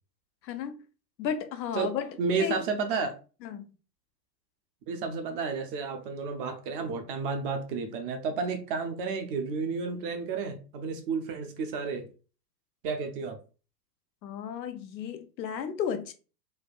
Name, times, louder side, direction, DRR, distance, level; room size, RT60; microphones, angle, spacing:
voice 1, 0.4-0.8 1.2-2.1 2.4-2.6 3.4-3.6 14.2-16.1, left 8 dB, 85° left, 0.6 m, -33 dB
voice 2, 2.2-3.1 4.9-12.1 12.8-13.4, right 5 dB, 35° right, 0.4 m, -31 dB
3.4 x 2.2 x 2.4 m
hypercardioid pair, 110°, 50 cm